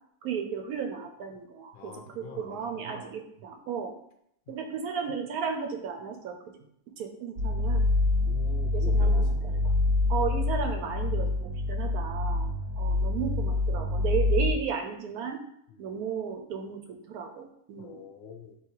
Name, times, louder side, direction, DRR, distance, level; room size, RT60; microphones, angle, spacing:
voice 1, 0.2-3.9 4.5-6.6 7.0-7.9 8.7-9.7 10.1-15.4 15.8-18.0, right 6 dB, 75° right, 5 dB, 1.1 m, -34 dB
voice 2, 1.7-2.8 8.3-9.6 15.7-15.9 17.8-18.6, left 5 dB, 55° left, 3 dB, 0.7 m, -45 dB
sound 1, 7.4-14.5, left 2 dB, 50° right, 0.8 m, -26 dB
3.8 x 2.9 x 4.4 m, 0.73 s
omnidirectional pair, 1.6 m